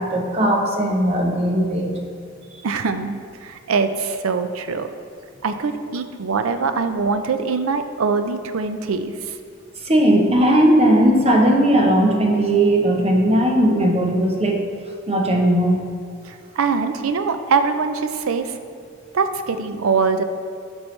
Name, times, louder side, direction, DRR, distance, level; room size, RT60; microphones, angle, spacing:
voice 1, 0.0-1.9 9.9-14.6 15.1-15.8, right 1 dB, 30° right, 1 dB, 0.8 m, -17 dB
voice 2, 2.6-4.9 5.4-9.4 16.2-18.6 19.1-20.2, right 5 dB, 90° right, 9 dB, 0.5 m, -23 dB
11.5 x 4.5 x 3.2 m, 2.3 s
head